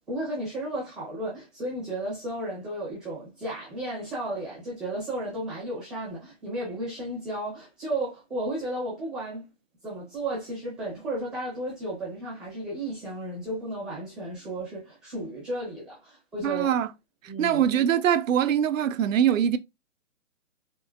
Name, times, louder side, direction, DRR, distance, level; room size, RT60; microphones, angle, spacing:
voice 1, 0.1-9.4 9.8-16.7 17.3-17.6, right 1 dB, ahead, 0.6 m, -33 dB
voice 2, 16.4-16.9 17.4-19.6, right 9 dB, 90° right, 0.5 m, -23 dB
3.7 x 2.6 x 2.4 m
hypercardioid pair, 160°, 38 cm